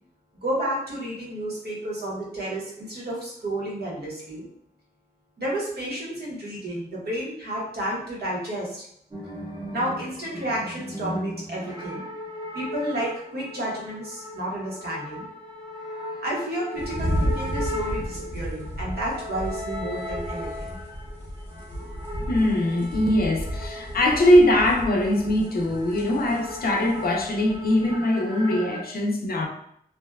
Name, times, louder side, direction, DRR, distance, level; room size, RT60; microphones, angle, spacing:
voice 1, 0.4-4.5 5.4-8.9 9.7-12.0 12.5-15.3 16.2-20.8, right 1 dB, 70° right, -5 dB, 1.0 m, -31 dB
sound 1, 9.1-28.8, left 1 dB, 25° right, 0.6 m, -37 dB
sound 2, 16.8-27.9, equal, 15° left, 0.8 m, -34 dB
voice 2, 22.3-29.5, left 1 dB, 65° left, 2 dB, 0.5 m, -21 dB
2.6 x 2.1 x 2.3 m, 0.69 s
wide cardioid pair, 110°, 17 cm